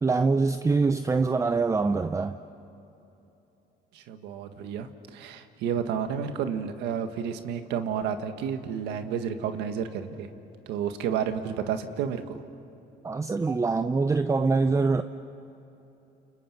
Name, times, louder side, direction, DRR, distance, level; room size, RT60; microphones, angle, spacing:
voice 1, 0.0-2.4 13.0-15.0, right 4 dB, 20° right, 9 dB, 0.7 m, -24 dB
voice 2, 3.9-10.3 10.7-12.4, right 8 dB, 90° right, 8 dB, 1.7 m, -31 dB
29.5 x 29.5 x 6.0 m, 3.0 s
cardioid pair, 110°, 17 cm